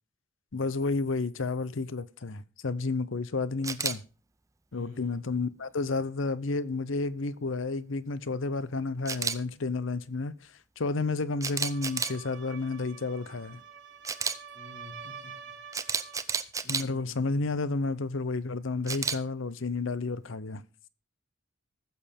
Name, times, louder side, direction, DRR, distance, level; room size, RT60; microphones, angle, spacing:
voice 1, 0.5-4.0 4.7-13.6 16.7-20.6, left 3 dB, 60° left, 0.7 m, -31 dB
Camera, 3.6-3.9 9.1-9.4 11.4-12.2 14.0-14.3 15.7-16.8 18.9-19.2, right 5 dB, 15° right, 0.5 m, -30 dB
voice 2, 4.7-5.1 14.5-15.5 16.6-17.3, left 2 dB, 80° left, 4.4 m, -48 dB
sound 1, 11.4-16.3, right 7 dB, 55° right, 1.7 m, -47 dB
20.0 x 6.8 x 3.5 m
head